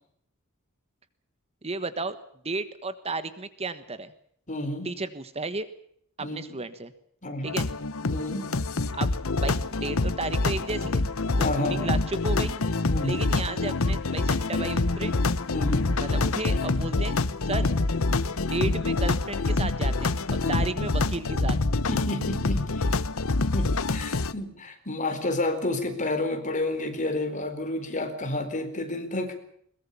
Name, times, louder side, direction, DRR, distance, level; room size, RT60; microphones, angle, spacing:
voice 1, 1.6-2.2 2.4-4.1 4.8-5.7 6.2-6.9 7.4-7.7 8.9-9.1 9.4-11.0 11.4-12.5 13.0-15.1 16.0-17.2 17.4-17.7 18.5-20.1 20.5-21.6, right 3 dB, 30° right, 12 dB, 1.3 m, -33 dB
voice 2, 4.5-4.9 6.2-6.6 7.2-7.5 8.1-8.5 11.4-11.8 12.9-13.2 15.5-15.9 16.9-17.0 17.5-17.7 20.4-20.7 21.9-23.0 23.5-29.3, left 2 dB, 35° left, 7 dB, 4.3 m, -30 dB
sound 1, 7.5-24.3, left 3 dB, 70° left, 1.0 m, -26 dB
22.0 x 21.5 x 6.9 m, 0.67 s
head